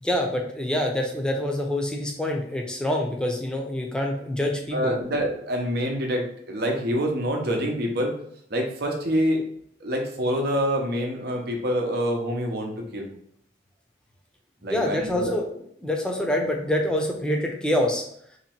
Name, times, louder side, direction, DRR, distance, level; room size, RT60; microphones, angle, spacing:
voice 1, 0.0-5.0 14.7-15.5 15.8-18.0, left 1 dB, 5° left, 0 dB, 0.6 m, -26 dB
voice 2, 4.7-8.2 8.5-9.4 9.8-13.1 14.6-15.3, equal, 60° right, 1 dB, 0.8 m, -26 dB
3.1 x 2.9 x 4.4 m, 0.67 s
head